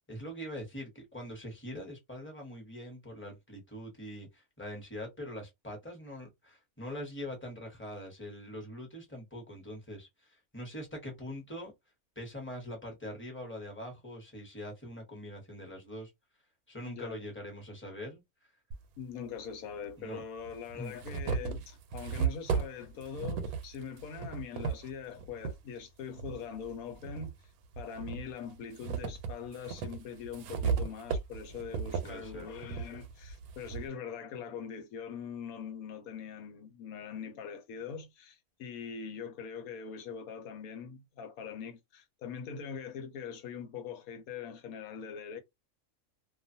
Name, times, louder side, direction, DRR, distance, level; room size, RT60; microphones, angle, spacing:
voice 1, 0.1-11.7 12.2-16.1 16.7-18.2 20.0-20.2 20.7-20.9 32.0-32.5, equal, 10° left, 0.9 m, -43 dB
voice 2, 16.9-17.2 19.0-27.3 27.8-45.4, left 6 dB, 80° left, 1.1 m, -42 dB
sound 1, 18.7-18.8 19.9-20.0 20.5-25.6 26.1-27.3 27.7-33.9, right 6 dB, 85° right, 1.1 m, -36 dB
2.5 x 2.3 x 2.6 m
omnidirectional pair, 1.5 m